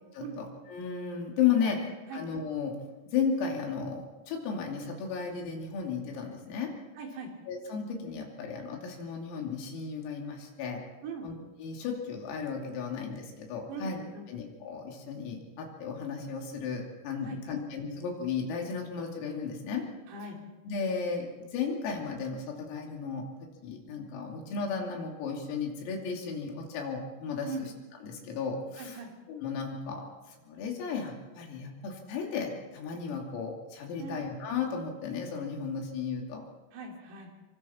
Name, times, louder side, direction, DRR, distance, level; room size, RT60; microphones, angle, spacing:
voice 1, 0.2-1.8 2.1-2.8 3.1-6.7 7.5-10.8 11.2-11.3 11.6-14.0 14.3-19.9 20.7-27.5 28.0-29.0 29.3-36.4, left 6 dB, 80° left, 0 dB, 5.5 m, -34 dB
voice 2, 7.0-7.3 11.0-11.3 13.7-14.3 17.2-17.6 20.1-20.4 27.5-27.6 28.8-29.1 34.0-34.2 36.7-37.3, right 3 dB, 85° right, 1 dB, 5.8 m, -40 dB
26.5 x 24.5 x 4.4 m, 1.2 s
omnidirectional pair, 6.0 m